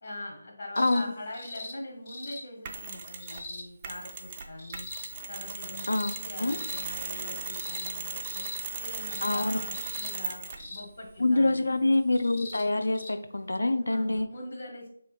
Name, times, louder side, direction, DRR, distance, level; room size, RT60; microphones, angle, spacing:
voice 1, 0.0-4.9 5.3-8.5 8.8-11.7 13.8-14.9, left 1 dB, 55° left, -1 dB, 1.1 m, -43 dB
sound 1, 0.7-1.0 1.3-1.7 2.1-2.4 3.2-3.6 4.6-5.1 5.7-6.2 6.5-6.8 7.5-7.9 8.2-8.6 9.1-9.4 9.7-10.1 10.6-10.9 12.1-12.6 12.9-13.1 14.2-14.3, left 2 dB, 35° left, 0.7 m, -41 dB
Mechanisms, 2.6-3.5 3.8-10.7, right 4 dB, 30° right, 0.3 m, -37 dB
voice 2, 9.2-9.6 11.2-14.3, left 2 dB, 75° left, 8 dB, 0.3 m, -25 dB
3.2 x 3.1 x 2.3 m, 0.66 s
figure-of-eight pair, 155°, 0 cm